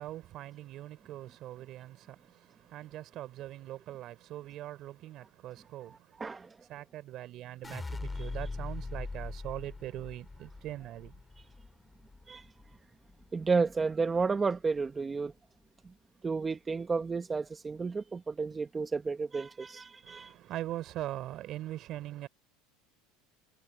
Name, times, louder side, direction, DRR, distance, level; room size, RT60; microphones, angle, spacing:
voice 1, 0.0-6.3 6.7-11.2 20.0-22.3, right 14 dB, 45° right, 3.6 m, -42 dB
voice 2, 6.2-6.6 12.3-12.5 13.3-15.3 15.8-15.9 16.2-20.3, right 4 dB, 15° right, 1.2 m, -32 dB
sound 1, 7.6-13.8 14.2-14.8, left 3 dB, 10° left, 4.7 m, -42 dB
supercardioid pair, 135°, 0 cm